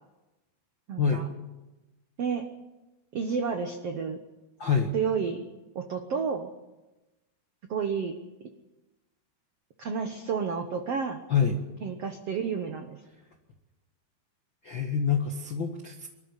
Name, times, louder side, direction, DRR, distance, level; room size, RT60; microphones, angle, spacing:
voice 1, 0.9-1.3 2.2-2.4 3.1-4.2 4.9-5.5 5.7-6.5 7.7-8.1 9.8-11.2 11.8-13.0, right 6 dB, 85° right, 6 dB, 1.3 m, -30 dB
voice 2, 4.6-4.9 11.3-11.6 14.6-16.1, left 6 dB, 70° left, 3 dB, 1.1 m, -26 dB
24.5 x 13.5 x 9.8 m, 1.1 s
omnidirectional pair, 4.8 m